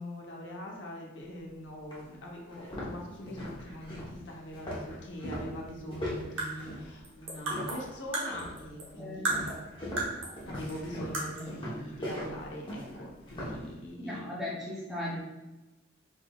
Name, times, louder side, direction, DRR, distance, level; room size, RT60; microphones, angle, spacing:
voice 1, 0.0-9.6 10.5-14.2, left 1 dB, 65° left, -1 dB, 0.8 m, -42 dB
sound 1, 1.3-1.4 1.9-2.0 2.5-8.0 8.3-8.7 9.3-13.7, left 1 dB, 25° left, 0.9 m, -39 dB
sound 2, 5.2-7.4, right 7 dB, 25° right, 0.8 m, -51 dB
sound 3, 6.1-8.9 9.2-10.4 10.7-10.8 11.1-11.6, right 2 dB, 75° right, 0.9 m, -35 dB
voice 2, 9.0-9.5 14.0-15.2, left 1 dB, ahead, -7 dB, 0.5 m, -37 dB
3.5 x 3.4 x 2.3 m, 1.0 s
head